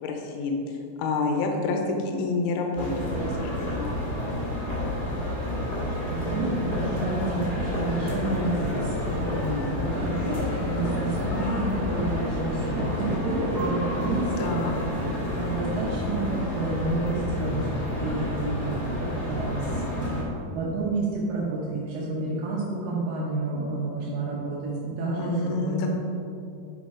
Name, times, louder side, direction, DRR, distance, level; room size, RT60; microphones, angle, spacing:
voice 1, 0.0-4.0 14.4-14.7 25.2-25.9, left 3 dB, 75° left, 2 dB, 2.4 m, -29 dB
sound 1, 2.7-20.2, left 1 dB, 45° left, 1.3 m, -29 dB
voice 2, 6.1-14.7 15.4-18.7 19.0-25.8, right 3 dB, 75° right, -5 dB, 2.1 m, -30 dB
9.7 x 5.3 x 4.9 m, 2.6 s
omnidirectional pair, 5.5 m